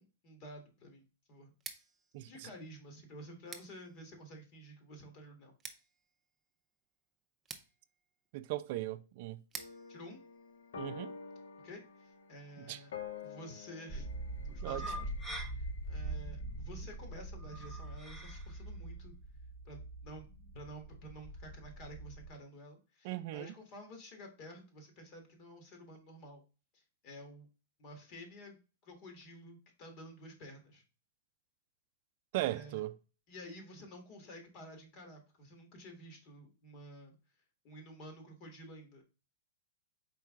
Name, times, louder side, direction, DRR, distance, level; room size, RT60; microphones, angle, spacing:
voice 1, 0.0-1.5 2.2-5.6 9.9-10.2 11.6-12.9 13.2-14.1 14.4-15.1 15.4-19.1 19.6-20.2 20.5-26.4 26.7-27.5 27.8-28.6 28.8-30.8 32.4-32.8 33.3-37.2 37.6-39.0, equal, 45° left, 1.6 m, -51 dB
Scissors, 1.5-11.3, right 5 dB, 15° right, 0.6 m, -54 dB
voice 2, 8.3-9.4 10.8-11.1 12.6-12.8 14.6-14.9 23.0-23.5 32.3-33.0, right 16 dB, 55° right, 0.4 m, -38 dB
sound 1, 9.5-16.3, left 6 dB, 85° left, 0.6 m, -49 dB
sound 2, 13.9-22.3, right 2 dB, 15° left, 0.9 m, -43 dB
4.5 x 3.1 x 3.6 m
hypercardioid pair, 135°, 0 cm